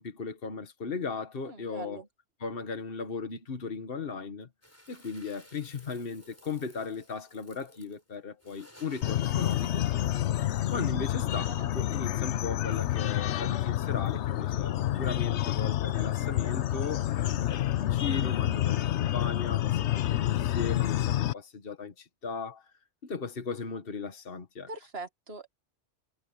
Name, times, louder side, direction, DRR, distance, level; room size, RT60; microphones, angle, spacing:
voice 1, 0.0-2.0 2.4-4.5 4.9-9.8 10.7-22.7 23.0-24.7, left 5 dB, 55° left, 1.7 m, -37 dB
voice 2, 1.4-2.1 11.3-11.7 24.7-25.5, right 3 dB, 60° right, 2.2 m, -42 dB
sound 1, 4.6-11.0, equal, 10° left, 8.0 m, -56 dB
sound 2, 9.0-21.3, left 13 dB, 80° left, 1.0 m, -28 dB
omnidirectional pair, 1.2 m